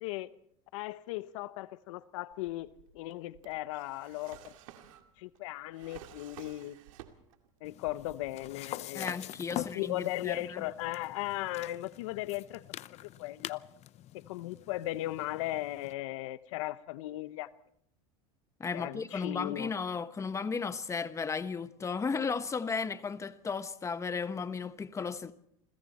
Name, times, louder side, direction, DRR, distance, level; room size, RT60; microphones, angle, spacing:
voice 1, 0.7-2.7 2.9-4.5 5.2-6.8 7.6-12.6 13.2-13.6 14.1-17.5 18.7-19.7, left 16 dB, 75° left, 0.9 m, -37 dB
Drawer open or close, 2.3-7.5 7.8-8.6, right 11 dB, 80° right, 2.4 m, -53 dB
sound 1, 7.6-15.9, left 14 dB, 40° left, 0.7 m, -45 dB
voice 2, 8.9-10.6 18.6-25.3, left 5 dB, 20° left, 1.1 m, -35 dB
28.5 x 22.0 x 4.3 m
supercardioid pair, 115°, 17 cm